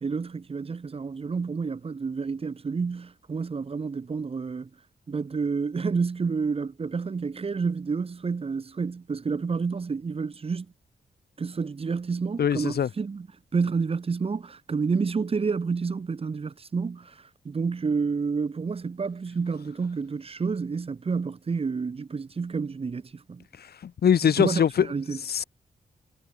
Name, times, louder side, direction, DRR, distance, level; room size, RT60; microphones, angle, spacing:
voice 1, 0.0-4.7 5.1-10.7 11.4-13.3 13.5-23.4 24.2-25.2, right 5 dB, 35° right, 2.0 m, -29 dB
voice 2, 12.4-12.9 23.8-24.9 25.3-25.4, left 8 dB, 80° left, 2.8 m, -22 dB
wide cardioid pair, 155°, 16 cm